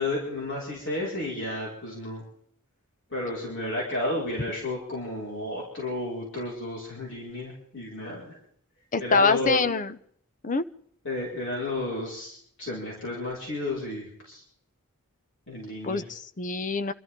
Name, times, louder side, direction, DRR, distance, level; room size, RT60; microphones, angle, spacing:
voice 1, 0.0-2.2 3.1-8.4 9.0-9.6 11.0-14.4 15.5-16.0, left 1 dB, 55° left, -5 dB, 5.3 m, -32 dB
voice 2, 8.9-9.9 10.4-10.6 15.8-16.9, left 4 dB, 35° left, 13 dB, 0.6 m, -25 dB
27.0 x 13.0 x 3.8 m, 0.65 s
head